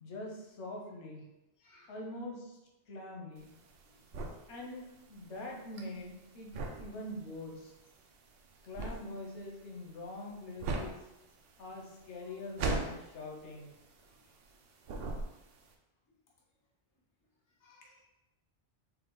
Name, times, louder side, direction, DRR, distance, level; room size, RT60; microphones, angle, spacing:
voice 1, 0.0-1.3 1.9-2.6 2.9-3.6 4.5-7.7 8.6-11.1 11.6-13.8, left 1 dB, 90° left, 0 dB, 1.1 m, -44 dB
voice 2, 1.6-2.0 3.9-4.5 12.2-12.3 14.1-14.2 17.6-18.0, left 2 dB, 20° left, -3 dB, 0.6 m, -64 dB
sound 1, 3.4-14.6 14.8-15.7, right 3 dB, 65° right, 0.7 m, -39 dB
4.7 x 2.0 x 3.7 m, 0.93 s
omnidirectional pair, 1.1 m